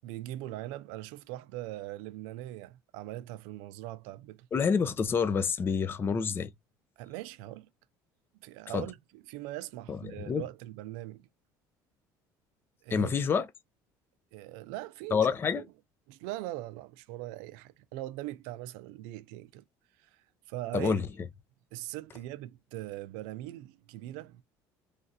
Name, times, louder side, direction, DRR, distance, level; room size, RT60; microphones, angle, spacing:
voice 1, 0.0-4.5 7.0-7.7 8.4-11.3 12.8-13.2 14.3-15.3 15.6-15.7 16.1-19.6 20.0-21.0 21.7-24.4, right 15 dB, 85° right, 0.4 m, -41 dB
voice 2, 4.5-6.5 8.7-8.8 9.9-10.0 10.3-10.4 12.9-13.5 15.1-15.6 20.7-21.1, left 6 dB, 25° left, 0.4 m, -27 dB
3.2 x 2.4 x 2.7 m
cardioid pair, 115°, 8 cm